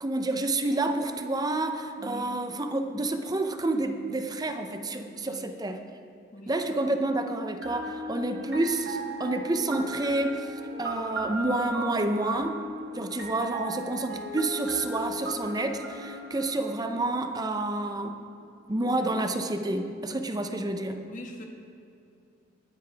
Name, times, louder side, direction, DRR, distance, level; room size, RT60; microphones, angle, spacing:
voice 1, 0.0-5.8 6.5-10.5 10.8-12.6 12.9-18.2 18.7-21.0, right 2 dB, 20° right, 6 dB, 0.6 m, -29 dB
sound 1, 7.6-17.4, right 1 dB, 80° right, 1.6 m, -37 dB
voice 2, 21.1-21.4, left 1 dB, 45° left, 2 dB, 1.4 m, -43 dB
20.5 x 8.7 x 3.4 m, 2.6 s
head